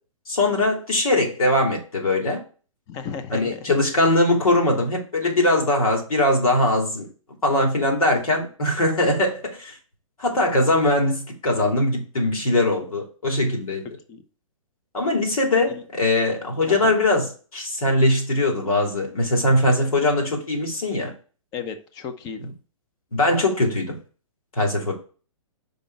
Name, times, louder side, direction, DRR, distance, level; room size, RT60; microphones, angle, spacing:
voice 1, 0.3-2.4 3.3-7.1 7.4-9.8 10.2-13.9 14.9-21.1 23.1-24.0 24.5-24.9, left 1 dB, 90° left, 1 dB, 3.0 m, -21 dB
voice 2, 2.9-3.7 14.1-14.2 15.7-15.8 16.7-16.9 21.5-22.5, left 6 dB, 20° left, 9 dB, 0.8 m, -34 dB
5.3 x 5.2 x 4.6 m, 0.38 s
hypercardioid pair, 150°, 18 cm